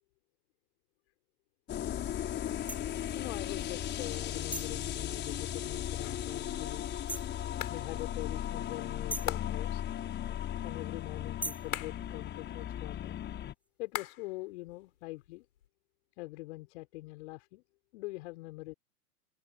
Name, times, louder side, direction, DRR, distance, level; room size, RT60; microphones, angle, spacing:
sound 1, 1.7-13.5, left 11 dB, 20° left, 6.2 m, -37 dB
sound 2, 2.7-2.8 4.5-4.8 7.1-7.4 9.1-9.4 11.4-11.7, right 1 dB, 5° right, 7.5 m, -38 dB
voice 1, 3.1-6.9 7.7-9.8 10.6-13.1 13.8-15.5 16.2-17.6 17.9-18.7, left 21 dB, 45° left, 6.6 m, -43 dB
sound 3, 6.0-6.4 7.6-7.9 9.3-9.8 11.7-12.2 13.9-14.4 14.7-15.7, left 11 dB, 60° left, 5.4 m, -41 dB
open air
figure-of-eight pair, 110°, 47 cm